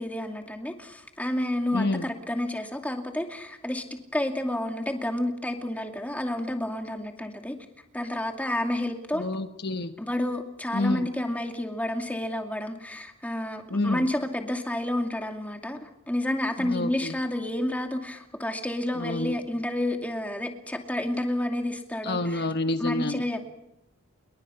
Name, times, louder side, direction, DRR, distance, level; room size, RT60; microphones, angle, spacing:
voice 1, 0.0-3.8 4.1-7.6 7.9-9.3 10.0-22.5 22.8-23.5, left 1 dB, 5° left, 4 dB, 2.4 m, -30 dB
voice 2, 1.7-2.0 9.1-9.9 10.7-11.1 13.7-14.0 16.6-17.1 18.9-19.4 22.0-23.2, left 2 dB, 50° left, 8 dB, 1.1 m, -28 dB
28.5 x 22.5 x 5.8 m, 0.88 s
head